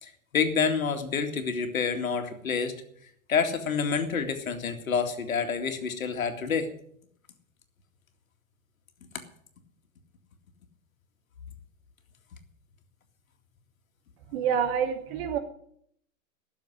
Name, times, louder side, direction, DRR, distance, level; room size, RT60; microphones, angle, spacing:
voice 1, 0.0-2.8 3.3-6.7, left 6 dB, 75° left, 7 dB, 2.3 m, -28 dB
voice 2, 14.3-15.4, right 7 dB, 45° right, 5 dB, 2.7 m, -27 dB
16.0 x 7.2 x 9.4 m, 0.68 s
hypercardioid pair, 115°, 41 cm